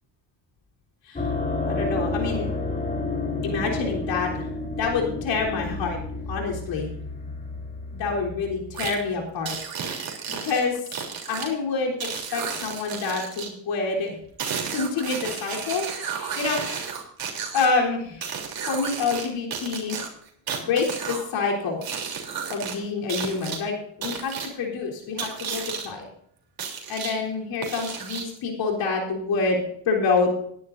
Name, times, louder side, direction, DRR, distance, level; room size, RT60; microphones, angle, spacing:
sound 1, 1.2-9.5, left 3 dB, 20° left, 3.4 m, -30 dB
voice 1, 1.7-2.5 3.4-4.5 4.8-6.0 6.3-6.9 7.9-10.8 11.3-14.2 14.7-15.9 16.1-16.9 17.5-18.4 18.7-20.0 20.6-21.8 22.5-26.1 26.9-30.3, left 4 dB, 75° left, -1 dB, 3.8 m, -27 dB
sound 2, 8.7-8.9 9.5-11.5 12.0-13.5 14.4-17.7 18.2-19.3 19.5-21.2 21.8-22.7 23.1-23.6 24.0-24.5 25.2-25.9 26.6-27.1 27.6-28.4, right 6 dB, 55° right, 3.5 m, -32 dB
19.0 x 10.5 x 2.7 m, 0.67 s
cardioid pair, 100°, 44 cm